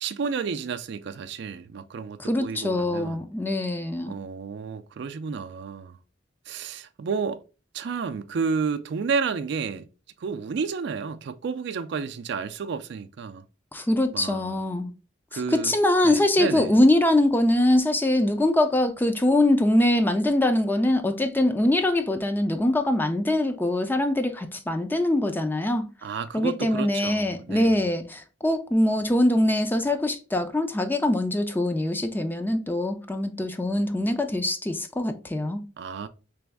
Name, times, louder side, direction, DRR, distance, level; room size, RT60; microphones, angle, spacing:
voice 1, 0.0-3.2 4.1-6.0 6.5-7.4 7.7-9.9 10.2-13.4 14.1-14.6 15.3-15.8 16.0-16.7 26.0-27.8 35.8-36.1, right 5 dB, 65° right, 0.4 m, -31 dB
voice 2, 2.2-4.2 13.7-14.9 15.3-25.9 26.3-35.6, left 1 dB, 10° left, 0.4 m, -23 dB
3.4 x 3.0 x 3.4 m
head